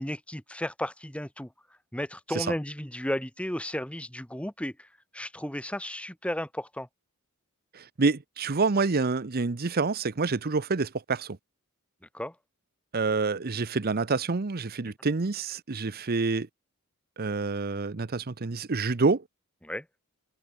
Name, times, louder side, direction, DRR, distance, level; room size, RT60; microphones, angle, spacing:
voice 1, 0.0-1.5 1.9-4.9 5.1-6.9 12.1-12.3 19.6-19.9, left 1 dB, 5° left, 1.8 m, -34 dB
voice 2, 8.0-11.3 12.9-16.5 17.2-19.2, right 4 dB, 45° right, 0.8 m, -27 dB
head